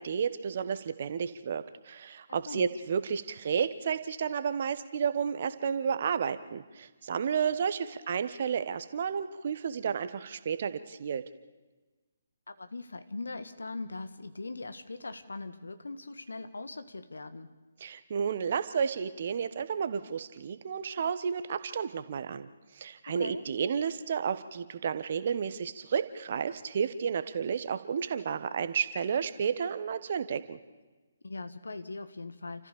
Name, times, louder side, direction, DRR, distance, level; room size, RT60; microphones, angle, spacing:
voice 1, 0.0-11.3 17.8-22.5 22.7-30.6, right 7 dB, 45° right, 11 dB, 1.3 m, -32 dB
voice 2, 2.3-2.7 12.5-17.5 23.1-23.4 31.2-32.7, left 3 dB, 70° left, 11 dB, 1.6 m, -40 dB
29.0 x 14.5 x 6.9 m, 1.2 s
figure-of-eight pair, 135°, 0 cm